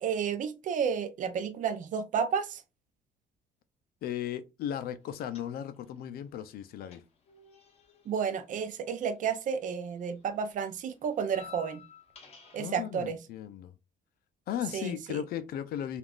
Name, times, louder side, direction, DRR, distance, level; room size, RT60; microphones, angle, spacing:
voice 1, 0.0-2.6 8.1-11.8 12.5-13.2 14.7-15.2, right 7 dB, 50° right, 0.5 m, -31 dB
voice 2, 4.0-7.0 12.6-13.7 14.5-16.0, left 10 dB, 65° left, 0.4 m, -36 dB
sound 1, 5.2-6.0 6.2-9.6 9.9-12.8, left 7 dB, 40° left, 0.9 m, -54 dB
3.4 x 2.4 x 2.3 m
cardioid pair, 110°, 17 cm